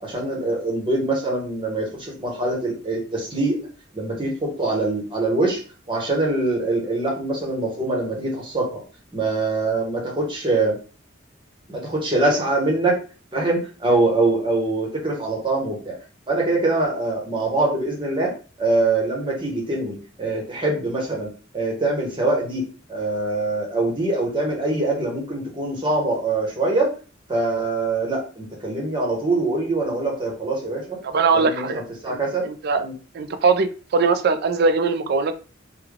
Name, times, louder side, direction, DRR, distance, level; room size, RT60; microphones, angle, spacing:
voice 1, 0.0-3.6 3.9-5.6 5.9-8.8 9.1-10.8 11.7-13.0 13.3-16.0 16.3-18.3 18.6-21.3 21.5-22.6 22.9-26.9 27.3-31.0 31.3-32.5 32.8-32.9, right 2 dB, 25° right, -1 dB, 1.0 m, -23 dB
voice 2, 31.0-31.8 32.1-32.8 33.1-35.3, right 4 dB, 55° right, 10 dB, 0.4 m, -21 dB
3.3 x 2.2 x 3.5 m, 0.37 s
head